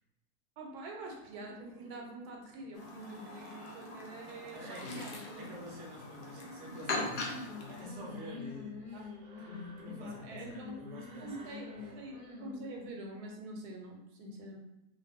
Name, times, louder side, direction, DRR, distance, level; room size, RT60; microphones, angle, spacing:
voice 1, 0.6-5.4 6.4-6.5 8.9-9.0 9.9-10.8 11.2-14.6, right 2 dB, 85° right, 1 dB, 1.2 m, -46 dB
sound 1, 0.9-12.9, right 2 dB, 70° right, 1.0 m, -59 dB
Chirp tweet, 2.7-7.8, left 2 dB, 85° left, 0.4 m, -41 dB
voice 2, 4.5-9.1 9.4-11.3 11.8-11.9, left 1 dB, 45° right, -2 dB, 0.5 m, -47 dB
sound 2, 6.7-13.1, left 5 dB, 40° left, 0.8 m, -47 dB
2.5 x 2.4 x 3.4 m, 0.91 s
omnidirectional pair, 1.6 m